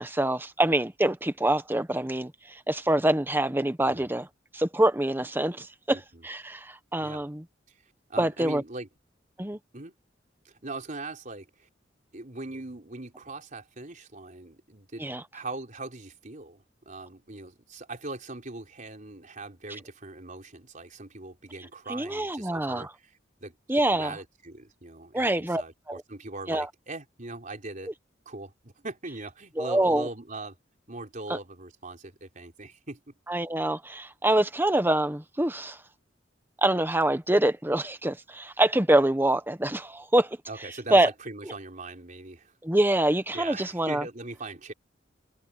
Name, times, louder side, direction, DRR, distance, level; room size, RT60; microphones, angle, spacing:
voice 1, 0.0-4.3 4.5-7.4 8.2-8.6 9.4-9.6 15.0-15.2 21.9-22.9 23.7-24.2 25.1-25.6 25.9-26.0 26.5-26.7 29.6-30.1 31.3-31.4 33.3-35.8 36.6-40.4 40.9-41.1 42.6-44.0, right 1 dB, 10° right, 1.3 m, -25 dB
voice 2, 5.9-6.2 7.0-7.2 8.1-8.9 9.7-10.0 10.4-11.7 12.1-23.1 23.4-27.9 28.3-30.6 30.9-33.0 40.5-42.5 43.3-44.7, right 2 dB, 45° right, 4.1 m, -41 dB
head